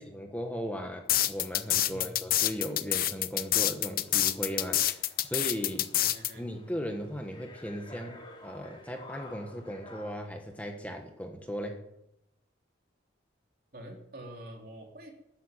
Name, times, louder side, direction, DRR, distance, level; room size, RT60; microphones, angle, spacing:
voice 1, 0.0-5.9 6.4-11.8, equal, 10° left, 3 dB, 1.4 m, -37 dB
sound 1, 1.1-6.3, left 13 dB, 50° left, 0.7 m, -27 dB
voice 2, 1.8-2.1 6.0-6.5 13.7-15.1, right 1 dB, 55° right, 1 dB, 3.1 m, -46 dB
sound 2, 4.0-10.3, left 2 dB, 25° left, 2.6 m, -52 dB
13.0 x 9.2 x 9.2 m, 0.84 s
head